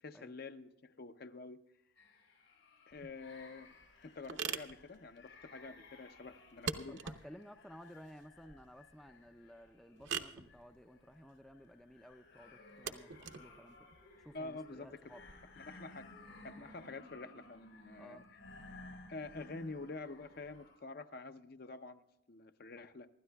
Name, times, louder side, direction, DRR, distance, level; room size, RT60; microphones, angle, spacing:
voice 1, 0.0-1.6 2.9-3.7 4.0-7.0 14.3-15.0 15.6-16.1 16.4-18.2 19.1-22.0 22.3-23.1, left 3 dB, 50° left, 9 dB, 0.6 m, -47 dB
sound 1, 2.0-20.8, left 2 dB, 80° left, 5.3 m, -58 dB
sound 2, 2.9-15.3, right 6 dB, 60° right, 0.8 m, -46 dB
voice 2, 6.9-13.9 14.2-15.2 18.0-18.3, equal, ahead, 7 dB, 0.4 m, -55 dB
25.0 x 12.5 x 2.3 m, 0.90 s
head